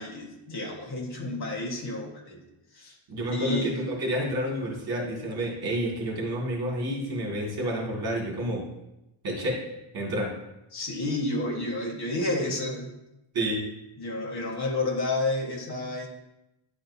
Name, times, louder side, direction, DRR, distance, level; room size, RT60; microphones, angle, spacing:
voice 1, 0.0-2.4 2.7-3.0 3.3-3.8 10.7-12.9 14.0-16.1, left 2 dB, 50° left, -1 dB, 1.5 m, -30 dB
voice 2, 3.1-8.6 9.2-9.7 9.9-10.4 13.3-13.6, equal, 50° right, -3 dB, 2.1 m, -29 dB
10.0 x 4.3 x 2.7 m, 0.90 s
wide cardioid pair, 155°, 49 cm